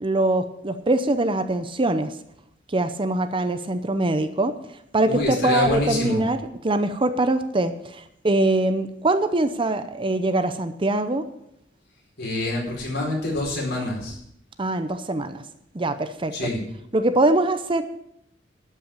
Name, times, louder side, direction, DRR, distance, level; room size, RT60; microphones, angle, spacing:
voice 1, 0.0-2.1 2.7-4.5 4.9-11.3 14.6-15.4 15.7-16.3 16.9-17.8, right 2 dB, 30° right, 10 dB, 0.7 m, -23 dB
voice 2, 5.0-6.2 12.2-14.2 16.3-16.6, left 2 dB, 60° left, -2 dB, 4.6 m, -26 dB
12.5 x 5.8 x 8.9 m, 0.77 s
head